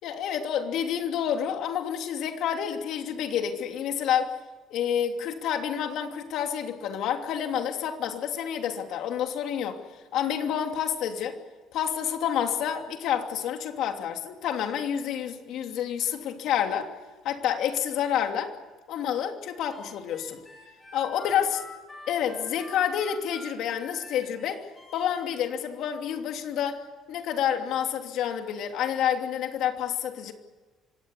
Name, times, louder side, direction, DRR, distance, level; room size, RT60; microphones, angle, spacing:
voice 1, 0.0-4.4 4.7-9.8 10.1-11.4 11.7-16.9 17.2-18.5 18.9-20.4 20.9-21.6 22.1-24.6 24.9-26.8 27.1-30.3, left 9 dB, 60° left, 5 dB, 2.8 m, -29 dB
Harmonica, 19.7-25.2, left 2 dB, 10° left, 6.3 m, -47 dB
25.5 x 18.0 x 9.7 m, 1.3 s
cardioid pair, 180°, 0 cm